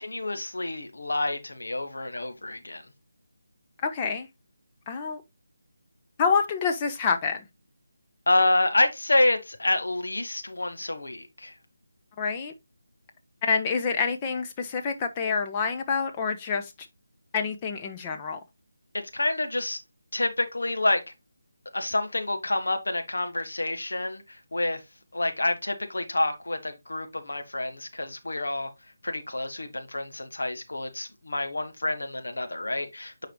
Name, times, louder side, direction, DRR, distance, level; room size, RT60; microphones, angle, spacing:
voice 1, 0.0-2.8 8.3-11.5 19.1-19.8 20.1-21.0 21.7-24.8 25.1-28.7 29.0-33.3, left 2 dB, 70° left, 1.5 m, -28 dB
voice 2, 3.8-4.3 4.9-5.2 6.2-7.5 12.2-12.5 13.4-16.9 17.3-18.4, left 5 dB, 20° left, 1.0 m, -27 dB
9.2 x 5.0 x 2.3 m
figure-of-eight pair, 155°, 0 cm